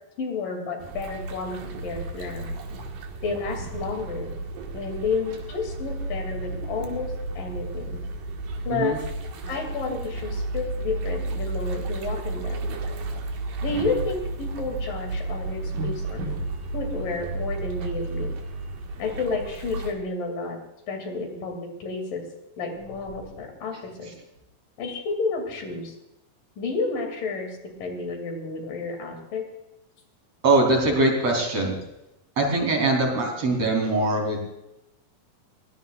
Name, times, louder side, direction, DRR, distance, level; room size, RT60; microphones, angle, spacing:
voice 1, 0.2-2.6 3.2-4.3 4.7-8.0 8.7-9.0 9.5-12.6 13.6-16.4 16.7-18.3 19.0-20.6 20.9-22.2 22.6-24.1 24.8-25.9 26.6-29.5, left 4 dB, 85° left, 4 dB, 4.3 m, -31 dB
sound 1, 0.8-19.9, right 2 dB, 80° right, 3.3 m, -32 dB
voice 2, 30.4-31.8 32.4-34.4, right 2 dB, 50° right, 1 dB, 4.6 m, -22 dB
21.5 x 18.5 x 2.5 m, 0.87 s
omnidirectional pair, 3.7 m